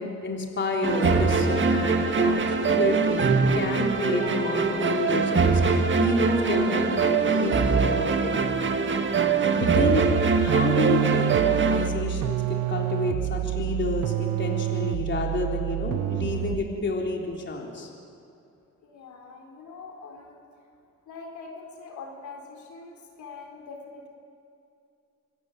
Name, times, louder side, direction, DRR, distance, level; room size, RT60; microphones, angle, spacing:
voice 1, 0.0-8.6 9.6-17.9, left 3 dB, 40° left, 0 dB, 3.6 m, -30 dB
sound 1, 0.8-11.9, right 5 dB, 40° right, 1.8 m, -23 dB
sound 2, 0.9-10.1, equal, ahead, 4.2 m, -37 dB
sound 3, 9.6-16.8, right 14 dB, 85° right, 0.9 m, -28 dB
voice 2, 18.8-20.4 21.1-24.1, left 4 dB, 75° left, 1 dB, 3.8 m, -43 dB
26.0 x 15.5 x 9.1 m, 2.6 s
cardioid pair, 90°, 30 cm